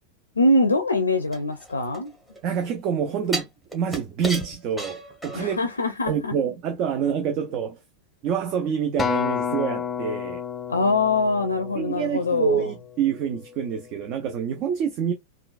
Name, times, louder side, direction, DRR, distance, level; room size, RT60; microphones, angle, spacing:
voice 1, 0.4-2.1 5.3-6.3 10.7-12.7, left 2 dB, 80° left, 0.4 m, -23 dB
sound 1, 1.3-2.5 3.3-5.7 6.1-6.2, right 2 dB, 5° right, 1.2 m, -34 dB
voice 2, 2.4-5.6 6.1-7.8 8.2-10.4 11.7-15.1, right 7 dB, 40° right, 0.5 m, -27 dB
Acoustic guitar, 9.0-13.4 14.1-14.2, left 7 dB, 20° left, 0.4 m, -30 dB
3.7 x 2.3 x 2.3 m
figure-of-eight pair, 90°, 0 cm